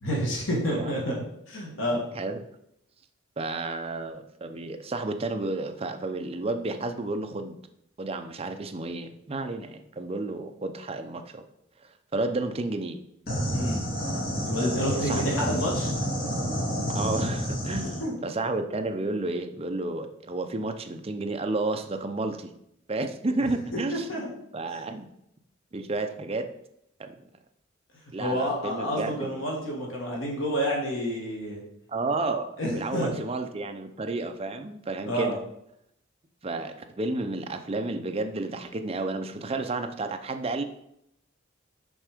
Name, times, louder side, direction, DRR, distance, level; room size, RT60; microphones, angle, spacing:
voice 1, 0.0-1.2 1.5-2.0 13.5-13.8 14.4-15.9 18.0-18.2 23.9-24.3 28.2-31.6 32.6-33.2 35.1-35.4, equal, 65° left, -2 dB, 1.9 m, -29 dB
voice 2, 0.7-1.2 1.8-2.4 3.4-7.6 8.0-11.4 12.1-13.0 14.6-15.6 16.9-22.5 22.9-24.1 24.5-25.1 25.7-26.5 27.0-27.1 28.1-29.3 31.9-35.4 36.4-40.6, right 2 dB, 30° right, 7 dB, 0.5 m, -31 dB
sound 1, 13.3-18.1, equal, 50° left, 2.4 m, -29 dB
6.3 x 4.5 x 5.0 m, 0.76 s
head